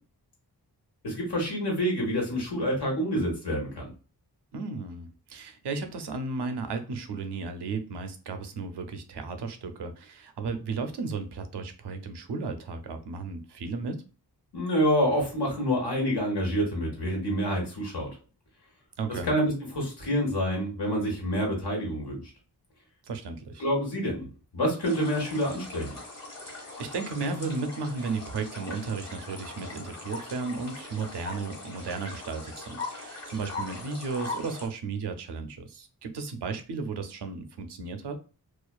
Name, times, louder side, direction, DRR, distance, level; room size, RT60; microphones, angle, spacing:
voice 1, 1.0-3.9 14.5-18.1 19.2-22.2 23.6-24.3 24.5-26.0, equal, 80° left, -1 dB, 1.2 m, -27 dB
voice 2, 4.5-14.0 19.0-19.4 23.0-23.6 26.4-38.2, right 4 dB, 80° right, 8 dB, 0.5 m, -34 dB
sound 1, 24.8-34.7, left 3 dB, 40° left, 1.2 m, -40 dB
2.4 x 2.2 x 2.3 m, 0.35 s
wide cardioid pair, 85°, 40 cm